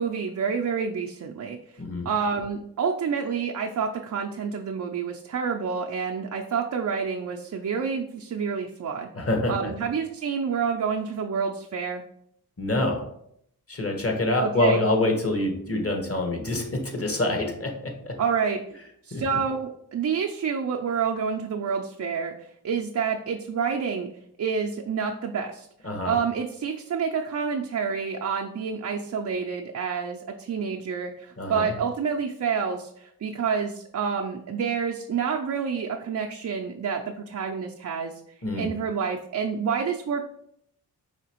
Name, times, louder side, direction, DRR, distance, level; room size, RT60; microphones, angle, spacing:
voice 1, 0.0-1.6 2.0-9.1 9.5-12.0 14.4-14.8 18.2-18.6 19.0-22.3 22.6-24.1 24.4-25.7 26.1-38.2 38.5-40.2, right 6 dB, 45° right, 1 dB, 0.5 m, -28 dB
voice 2, 1.8-2.1 9.1-9.5 12.6-13.1 13.7-18.2 19.1-19.2 25.8-26.2 31.4-31.7 38.4-38.7, left 2 dB, 35° left, 2 dB, 1.2 m, -26 dB
4.9 x 2.9 x 2.9 m, 0.71 s
cardioid pair, 45°, 40 cm